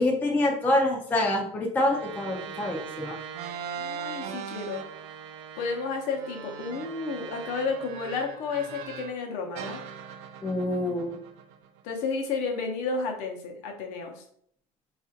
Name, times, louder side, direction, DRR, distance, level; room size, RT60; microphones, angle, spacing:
voice 1, 0.0-3.2 10.4-11.2, left 1 dB, 10° left, -1 dB, 0.4 m, -26 dB
sound 1, 1.8-9.2 9.5-11.9, right 7 dB, 60° right, 0.4 m, -40 dB
voice 2, 3.7-4.8 5.6-9.8 11.8-14.2, left 4 dB, 55° left, 3 dB, 0.7 m, -32 dB
4.1 x 2.4 x 2.7 m, 0.64 s
cardioid pair, 155°, 15 cm